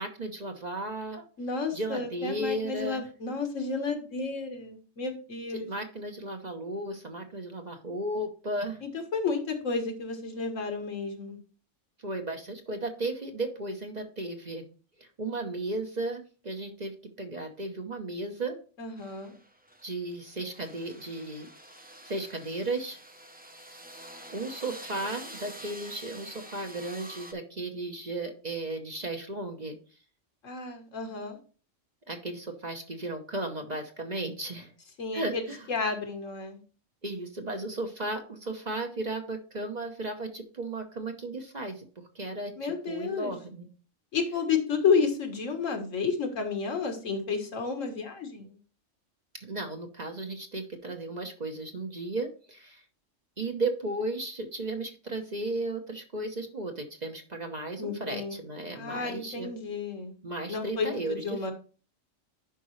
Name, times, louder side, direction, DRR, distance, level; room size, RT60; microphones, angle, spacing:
voice 1, 0.0-1.2 1.7-3.0 5.5-8.8 12.0-14.6 15.0-18.6 19.8-21.5 22.0-23.0 24.3-29.8 32.1-34.7 35.1-35.7 37.0-41.8 42.1-43.7 49.4-52.8 53.4-59.5 60.2-61.5, right 2 dB, 35° right, 4 dB, 0.9 m, -35 dB
voice 2, 1.4-5.7 8.8-11.4 18.8-19.3 30.4-31.4 35.0-35.4 35.7-36.6 42.6-43.3 44.1-48.6 57.8-58.3 58.8-60.2 60.5-61.5, left 5 dB, 70° left, 5 dB, 1.7 m, -31 dB
sound 1, 19.0-27.3, right 1 dB, 10° right, 0.6 m, -47 dB
10.5 x 5.3 x 3.1 m, 0.38 s
omnidirectional pair, 1.3 m